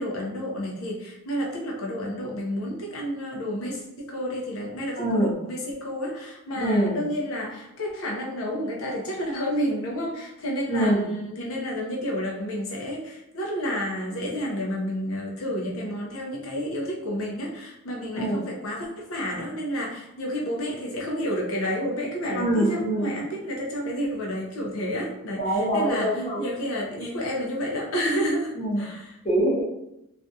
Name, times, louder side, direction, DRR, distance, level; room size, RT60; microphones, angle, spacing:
voice 1, 0.0-29.2, equal, 75° left, -2 dB, 0.6 m, -30 dB
voice 2, 5.0-5.3 6.6-6.9 10.7-11.0 18.2-18.4 22.4-23.1 25.4-26.4 28.6-28.8 29.2-29.6, right 1 dB, 25° left, -5 dB, 0.6 m, -24 dB
2.5 x 2.2 x 2.6 m, 0.84 s
head